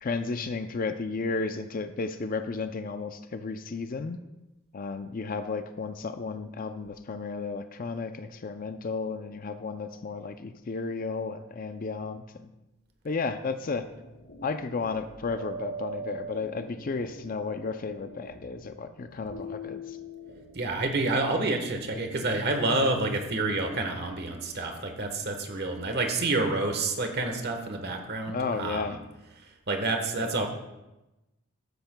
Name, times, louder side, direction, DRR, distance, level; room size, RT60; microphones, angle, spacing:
voice 1, 0.0-4.2 4.7-12.5 13.0-13.8 14.4-20.0 28.3-29.0 30.2-30.3, left 4 dB, 40° left, 9 dB, 0.4 m, -33 dB
sound 1, 13.6-24.0, right 1 dB, 90° left, 3.7 m, -44 dB
voice 2, 20.5-28.9 29.7-30.5, right 2 dB, 45° right, 4 dB, 1.2 m, -28 dB
13.5 x 10.0 x 2.2 m, 0.99 s
head